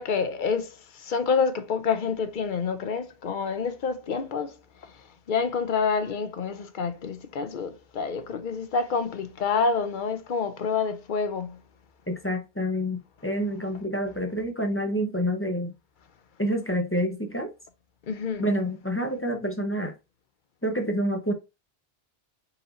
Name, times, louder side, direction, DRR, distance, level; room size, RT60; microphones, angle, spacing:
voice 1, 0.0-4.5 5.3-11.6 18.1-18.4, left 5 dB, 55° left, 0.8 m, -28 dB
voice 2, 12.1-15.7 16.4-17.5 18.4-19.9 20.6-21.3, equal, 15° left, 0.6 m, -28 dB
4.1 x 2.7 x 3.9 m
omnidirectional pair, 1.1 m